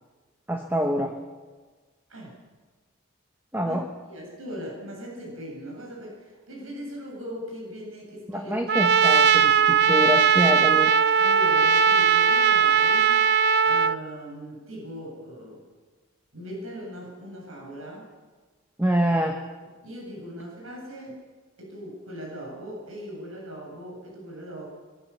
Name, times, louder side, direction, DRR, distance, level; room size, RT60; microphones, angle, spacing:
voice 1, 0.5-1.2 3.5-3.9 8.3-10.9 18.8-19.4, right 1 dB, 10° right, 4 dB, 1.2 m, -25 dB
voice 2, 2.1-2.4 3.6-3.8 4.1-8.5 11.2-13.2 13.6-15.6 16.3-18.1 19.8-21.2 21.6-24.7, equal, 80° right, -2 dB, 7.7 m, -39 dB
Trumpet, 8.7-14.0, right 6 dB, 50° right, 0.6 m, -19 dB
22.5 x 20.0 x 7.3 m, 1.4 s
head